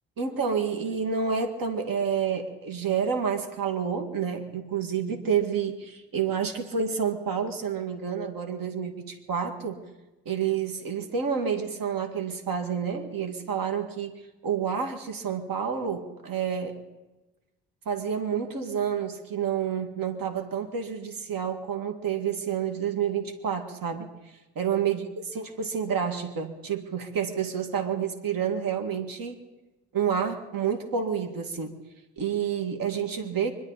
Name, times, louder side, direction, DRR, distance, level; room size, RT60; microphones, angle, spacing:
voice 1, 0.2-9.8 10.3-16.8 17.9-25.1 25.3-29.4 29.9-31.8 32.2-33.5, right 7 dB, 60° right, 5 dB, 2.0 m, -29 dB
25.5 x 11.5 x 4.1 m, 1.1 s
hypercardioid pair, 45°, 38 cm